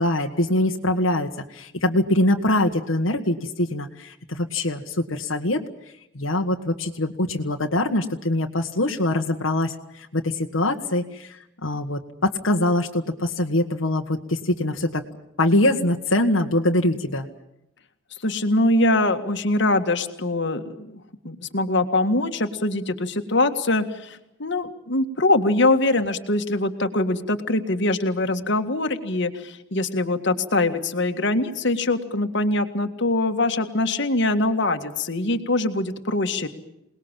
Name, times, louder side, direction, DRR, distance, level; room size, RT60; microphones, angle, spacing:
voice 1, 0.0-5.6 6.2-15.0 15.4-17.3, left 1 dB, 75° left, 3 dB, 1.6 m, -23 dB
voice 2, 18.2-36.5, left 2 dB, 60° left, 6 dB, 1.9 m, -23 dB
28.0 x 20.0 x 7.4 m, 0.83 s
head